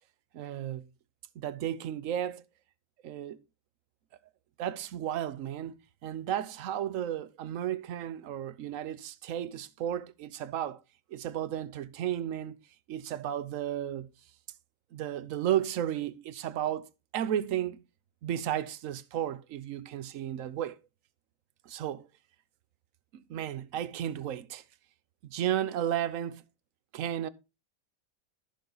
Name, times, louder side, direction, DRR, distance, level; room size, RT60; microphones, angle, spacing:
voice 1, 0.3-0.8 1.4-2.4 3.0-3.4 4.6-5.7 6.0-10.8 11.1-12.6 12.9-14.1 14.9-16.9 17.1-17.8 18.2-20.8 21.7-22.1 23.1-24.6 25.2-26.4 26.9-27.3, right 11 dB, 60° right, 1.0 m, -33 dB
13.5 x 6.4 x 3.9 m
omnidirectional pair, 1.8 m